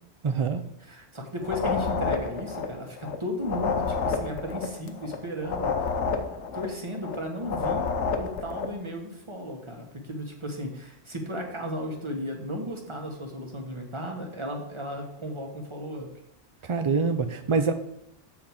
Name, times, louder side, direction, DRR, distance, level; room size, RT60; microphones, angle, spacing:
voice 1, 0.2-0.6 16.6-17.7, right 5 dB, 55° right, 7 dB, 0.3 m, -25 dB
voice 2, 0.8-5.9 6.5-7.9 8.2-16.1, equal, 25° right, 1 dB, 1.5 m, -35 dB
sound 1, 1.4-3.2 3.4-7.2 7.4-8.8, left 5 dB, 85° left, 1.2 m, -29 dB
7.6 x 4.6 x 7.1 m, 0.78 s
omnidirectional pair, 1.2 m